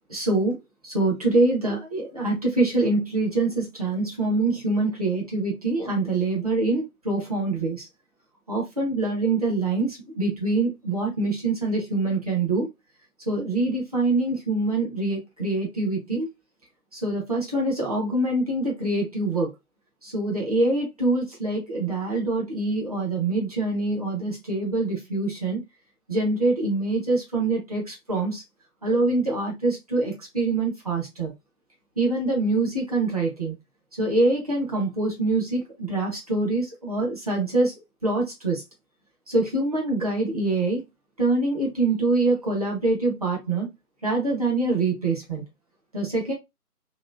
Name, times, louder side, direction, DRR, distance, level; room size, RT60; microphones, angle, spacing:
voice 1, 0.1-0.6 0.8-7.9 8.5-12.7 13.3-16.3 16.9-19.5 20.0-25.6 26.1-28.4 28.8-31.3 32.0-33.5 33.9-37.7 38.0-38.6 39.3-40.8 41.2-43.7 44.0-45.4 45.9-46.3, right 2 dB, 25° right, 0.9 m, -25 dB
3.0 x 2.9 x 2.3 m
figure-of-eight pair, 150°, 47 cm